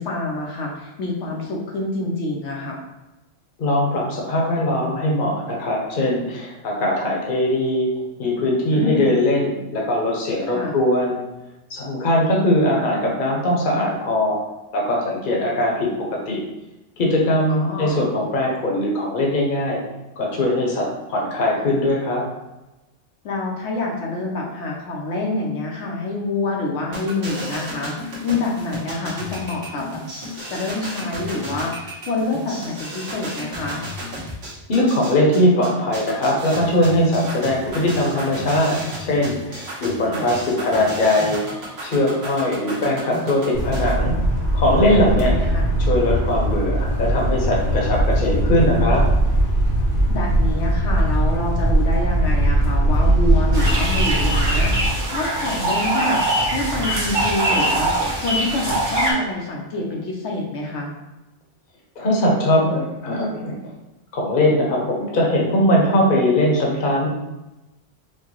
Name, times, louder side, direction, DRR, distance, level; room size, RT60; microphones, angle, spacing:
voice 1, 0.0-2.8 8.7-9.2 10.5-10.8 17.5-18.0 23.2-30.0 30.5-33.9 40.0-40.3 45.1-45.7 50.1-61.0, left 2 dB, 80° left, -1 dB, 1.0 m, -27 dB
voice 2, 3.6-7.9 8.2-11.2 11.7-14.4 14.7-15.9 16.3-16.4 17.0-19.8 20.2-22.2 34.7-44.2 44.5-45.3 45.8-49.0 62.0-63.5 64.1-67.1, left 1 dB, 50° left, -2 dB, 0.9 m, -20 dB
sound 1, 26.9-43.9, equal, 60° right, 1.2 m, -33 dB
sound 2, 43.5-54.9, right 1 dB, 20° left, 0.7 m, -20 dB
sound 3, 53.5-59.1, right 1 dB, 15° right, 0.9 m, -22 dB
4.5 x 2.2 x 2.9 m, 1.0 s
omnidirectional pair, 1.2 m